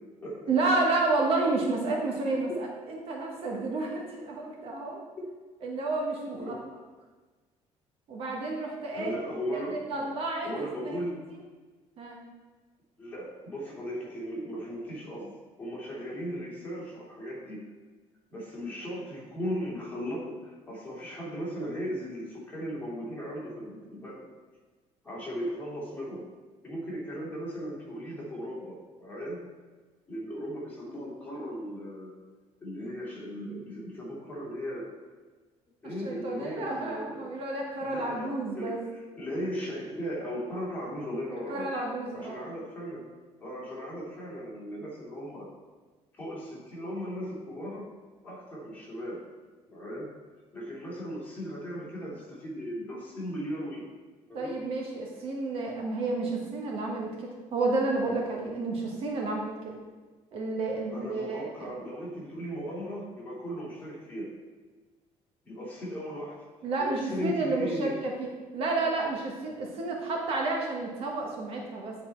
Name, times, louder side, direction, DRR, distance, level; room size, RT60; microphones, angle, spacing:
voice 1, 0.5-5.0 5.6-6.6 8.1-9.1 9.5-11.0 12.0-12.2 36.0-38.8 41.5-42.5 54.3-59.8 60.3-61.7 66.6-68.3 68.5-71.9, right 3 dB, 50° right, 0 dB, 1.2 m, -31 dB
voice 2, 6.3-6.7 8.9-10.2 10.4-11.2 13.0-15.3 15.6-17.6 18.3-24.2 25.0-26.3 26.6-29.4 30.1-32.1 32.6-34.9 35.8-37.3 37.8-41.7 42.1-43.0 43.4-45.5 46.2-47.9 48.2-49.2 49.7-50.1 50.5-53.9 54.3-54.5 60.9-64.3 65.4-66.5 66.8-67.9, equal, 15° left, -6 dB, 2.4 m, -37 dB
10.0 x 4.2 x 4.4 m, 1.3 s
cardioid pair, 170°, 12 cm